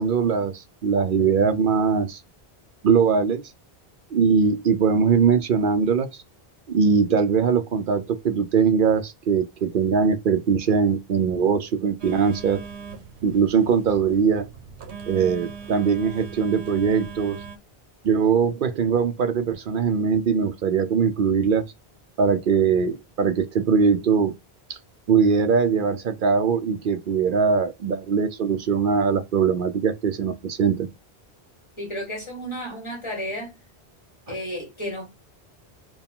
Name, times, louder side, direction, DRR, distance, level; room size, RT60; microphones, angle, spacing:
voice 1, 0.0-2.2 2.8-3.4 4.1-6.1 6.7-12.6 13.2-14.5 15.1-17.4 18.0-21.6 22.2-24.3 24.7-24.8 25.1-30.9, right 6 dB, 60° right, 0.7 m, -21 dB
Telephone, 12.0-17.6, right 5 dB, 85° right, 1.1 m, -40 dB
voice 2, 31.8-33.5 34.3-35.1, equal, 25° left, 1.7 m, -32 dB
4.5 x 2.3 x 3.6 m
omnidirectional pair, 1.1 m